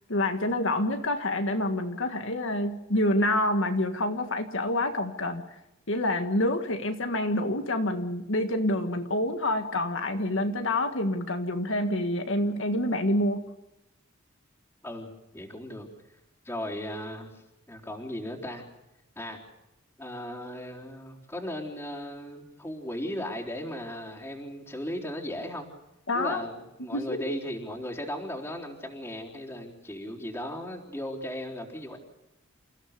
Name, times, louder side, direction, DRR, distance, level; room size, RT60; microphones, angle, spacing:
voice 1, 0.1-5.4 5.9-13.5 26.1-26.4 26.9-27.4, left 1 dB, 65° left, 6 dB, 1.7 m, -27 dB
voice 2, 14.8-15.9 16.4-17.4 17.7-18.6 19.2-19.4 20.0-25.7 26.1-32.0, equal, 10° left, -3 dB, 3.9 m, -36 dB
29.0 x 16.0 x 6.7 m, 0.95 s
head